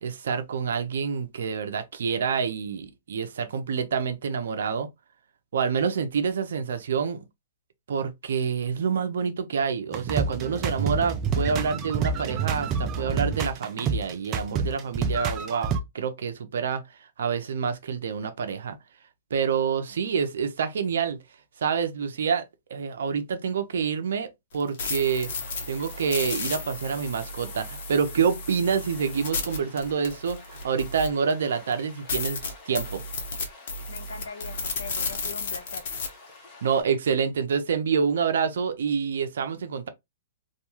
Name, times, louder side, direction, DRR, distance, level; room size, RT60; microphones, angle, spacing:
voice 1, 0.0-4.9 5.5-7.2 7.9-16.8 17.2-18.8 19.3-21.2 21.6-22.4 22.7-25.3 25.7-33.0 36.6-39.9, right 6 dB, 70° right, 0.6 m, -27 dB
sound 1, 9.9-15.8, right 5 dB, 25° right, 0.4 m, -28 dB
sound 2, 24.5-31.3 31.7-31.8 32.1-36.1, left 3 dB, 55° left, 0.9 m, -33 dB
Stream, 25.0-36.8, left 3 dB, 25° left, 1.0 m, -49 dB
voice 2, 33.9-35.9, left 5 dB, 90° left, 0.7 m, -41 dB
2.4 x 2.2 x 2.9 m
hypercardioid pair, 145°, 0 cm